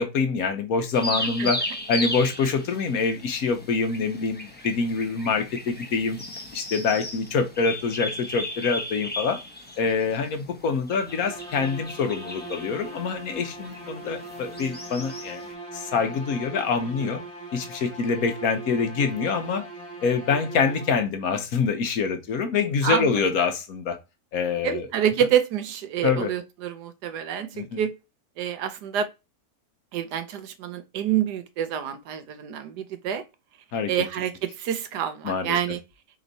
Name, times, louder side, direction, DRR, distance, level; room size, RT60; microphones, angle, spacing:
voice 1, 0.0-6.2 6.5-9.4 9.8-15.4 15.7-17.2 17.5-19.6 20.0-24.0 24.3-24.9 26.0-26.3 27.5-27.8 33.7-33.9 35.2-35.6, left 5 dB, 65° left, 1.2 m, -25 dB
sound 1, 0.9-15.4, left 1 dB, 10° left, 0.6 m, -36 dB
sound 2, 11.1-21.3, right 2 dB, 45° right, 2.1 m, -40 dB
voice 2, 24.6-27.9 28.4-29.1 29.9-33.2 33.9-35.8, right 9 dB, 80° right, 1.3 m, -27 dB
4.4 x 2.9 x 4.0 m
omnidirectional pair, 1.7 m